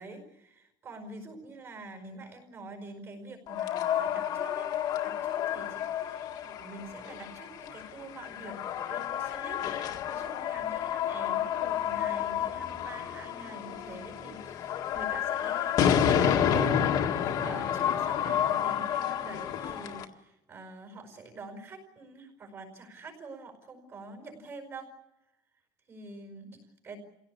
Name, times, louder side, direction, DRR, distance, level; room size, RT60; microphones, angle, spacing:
voice 1, 0.0-4.7 5.0-16.7 17.4-24.9 25.9-27.0, right 2 dB, 30° right, 5 dB, 5.1 m, -46 dB
sound 1, 3.5-20.0, left 9 dB, 45° left, 1.8 m, -30 dB
28.0 x 17.0 x 8.4 m, 0.94 s
cardioid pair, 175°, 10 cm